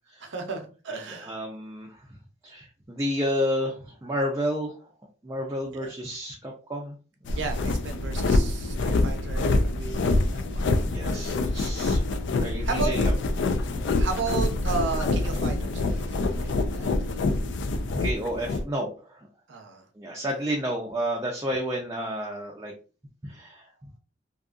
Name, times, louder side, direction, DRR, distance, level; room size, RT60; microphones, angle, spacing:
voice 1, 0.2-1.4 5.7-5.9 7.4-10.7 12.7-12.9 14.0-16.9 19.5-19.8, right 4 dB, 85° right, 4 dB, 0.6 m, -34 dB
voice 2, 1.2-2.1 2.4-4.9 5.2-7.0 7.2-7.4 10.7-13.1 13.7-14.0 16.8-16.9 17.9-19.3 20.0-22.7 23.2-23.7, equal, 15° right, -1 dB, 0.4 m, -31 dB
sound 1, 7.2-18.6, left 2 dB, 70° left, 0.3 m, -26 dB
2.7 x 2.4 x 2.4 m, 0.37 s
head